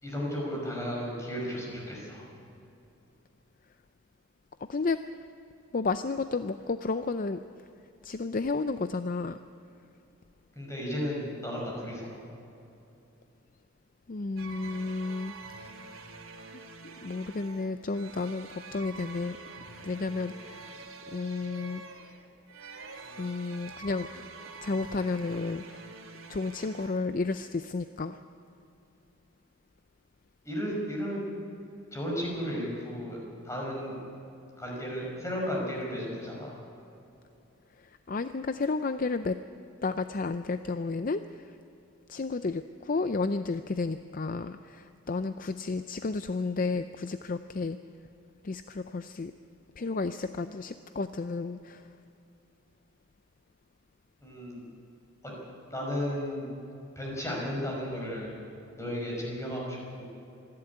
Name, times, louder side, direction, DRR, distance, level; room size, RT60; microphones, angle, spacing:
voice 1, 0.0-2.3 10.5-12.2 30.4-31.2 31.9-34.0 34.6-36.5 54.2-54.6 55.2-55.3 55.7-56.5 57.0-58.3 58.8-60.0, equal, 15° left, -2 dB, 5.7 m, -34 dB
voice 2, 5.7-7.4 8.0-9.4 14.1-15.3 17.0-19.4 19.8-20.7 21.1-21.8 23.2-24.3 24.6-25.9 26.3-28.2 38.1-39.4 39.8-41.2 42.1-47.8 48.4-49.3 49.8-51.8, left 3 dB, 40° left, 10 dB, 0.5 m, -32 dB
sound 1, 14.4-27.0, right 4 dB, 80° right, 2.7 m, -46 dB
26.5 x 11.5 x 9.7 m, 2.7 s
head